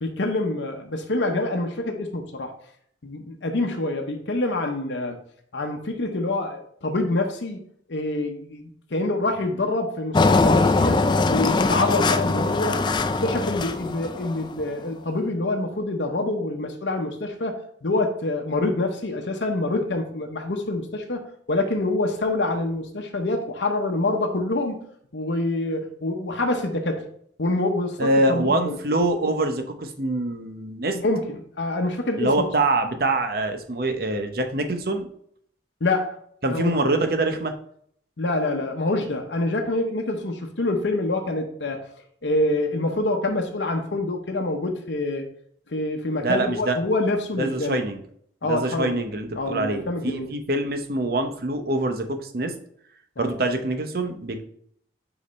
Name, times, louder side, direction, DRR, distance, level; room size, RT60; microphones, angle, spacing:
voice 1, 0.0-2.5 3.0-5.2 5.5-7.6 7.9-12.8 13.2-24.8 25.1-27.1 27.4-28.8 30.9-32.4 35.8-36.1 36.4-36.7 38.2-41.8 42.2-45.2 45.7-47.8 48.4-49.0 49.3-50.3 53.2-53.3, left 2 dB, 80° left, 3 dB, 0.9 m, -26 dB
Engine, 10.1-14.6, left 3 dB, 25° left, 0.3 m, -21 dB
voice 2, 28.0-31.0 32.2-35.1 36.4-37.5 46.2-46.8 47.4-48.0 48.4-52.5 53.2-54.4, right 2 dB, 55° right, 6 dB, 0.8 m, -24 dB
5.3 x 4.9 x 4.2 m, 0.65 s
head